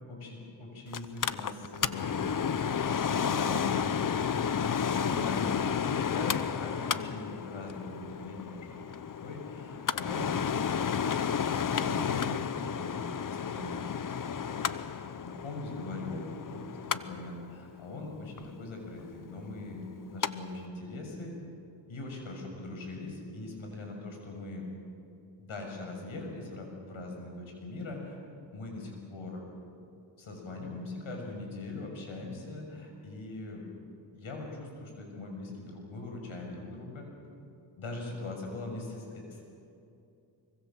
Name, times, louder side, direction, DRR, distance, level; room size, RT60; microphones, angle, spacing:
voice 1, 0.1-10.6 11.2-19.8 20.1-21.3 21.9-24.7 25.4-28.2 28.5-29.4 30.2-33.7 34.1-37.1 37.8-39.4, left 2 dB, 75° left, 2 dB, 6.8 m, -41 dB
Mechanical fan, 0.9-20.3 20.6-20.7, left 7 dB, 40° left, 0.9 m, -32 dB
25.0 x 23.5 x 7.6 m, 2.6 s
cardioid pair, 65°, 48 cm